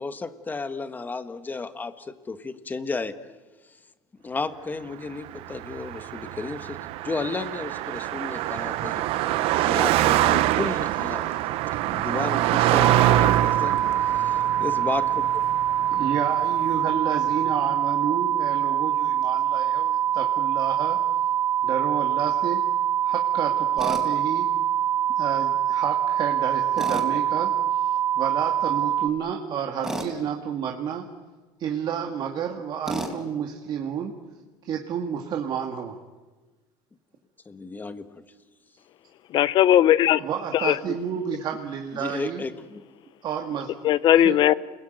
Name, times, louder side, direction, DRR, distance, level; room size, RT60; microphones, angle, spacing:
voice 1, 0.0-3.3 4.2-13.7 14.1-15.5 37.4-38.2 40.9-41.0 41.9-42.8, left 3 dB, 15° left, 11 dB, 1.5 m, -33 dB
Car passing by, 5.3-16.8, right 14 dB, 65° right, 1.0 m, -25 dB
sound 1, 12.8-29.1, right 10 dB, 25° right, 5.1 m, -24 dB
voice 2, 15.9-21.0 21.6-22.6 23.0-24.5 25.2-31.1 31.6-34.1 34.6-36.0 40.2-42.4 43.2-43.7 44.2-44.4, right 8 dB, 45° right, 3 dB, 2.2 m, -30 dB
Tools, 23.8-24.0 26.8-27.1 29.8-30.1 32.9-33.2, right 1 dB, 5° right, 4.3 m, -30 dB
voice 3, 39.3-40.2 40.6-40.7 43.8-44.5, left 11 dB, 50° left, 17 dB, 0.9 m, -18 dB
29.0 x 21.0 x 9.3 m, 1.3 s
cardioid pair, 140°, 11 cm